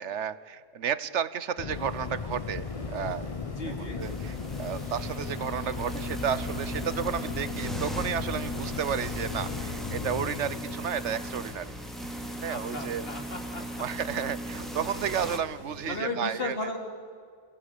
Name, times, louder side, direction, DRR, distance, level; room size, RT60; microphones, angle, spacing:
voice 1, 0.0-3.3 3.6-11.7 12.4-13.1 13.8-16.6, right 8 dB, 70° right, 16 dB, 1.2 m, -32 dB
sound 1, 1.6-12.3, left 5 dB, 35° left, 0.7 m, -37 dB
sound 2, 1.7-16.0, left 1 dB, 15° right, 3.0 m, -49 dB
voice 2, 3.5-4.0 12.5-13.6 15.9-16.8, left 2 dB, 50° left, 3 dB, 3.2 m, -35 dB
sound 3, 4.0-15.4, right 1 dB, ahead, 2.3 m, -38 dB
27.5 x 16.5 x 8.5 m, 2.1 s
omnidirectional pair, 1.3 m